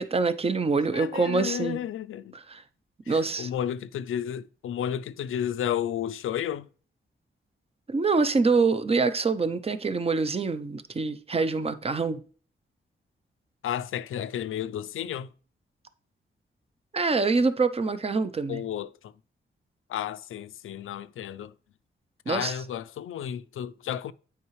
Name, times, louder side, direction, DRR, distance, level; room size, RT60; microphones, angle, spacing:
voice 1, 0.0-1.8 2.3-2.6 3.1-3.5 7.9-12.2 16.9-18.6 22.3-22.6, right 4 dB, 30° right, 0.6 m, -25 dB
voice 2, 0.9-2.4 3.1-6.7 13.6-15.3 18.5-19.1 19.9-21.5 22.3-24.1, left 10 dB, 90° left, 0.4 m, -32 dB
8.4 x 4.8 x 3.1 m
cardioid pair, 95°, 20 cm